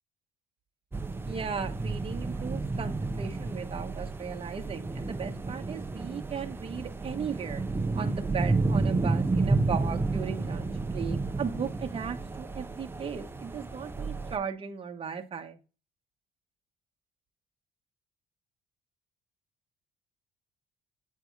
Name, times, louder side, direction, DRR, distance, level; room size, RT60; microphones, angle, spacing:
sound 1, 0.9-14.4, right 3 dB, 15° right, 0.6 m, -31 dB
voice 1, 1.2-7.6 7.9-15.6, right 6 dB, 35° right, 4 dB, 1.1 m, -36 dB
8.3 x 3.4 x 4.5 m, 0.31 s
cardioid pair, 110°, 17 cm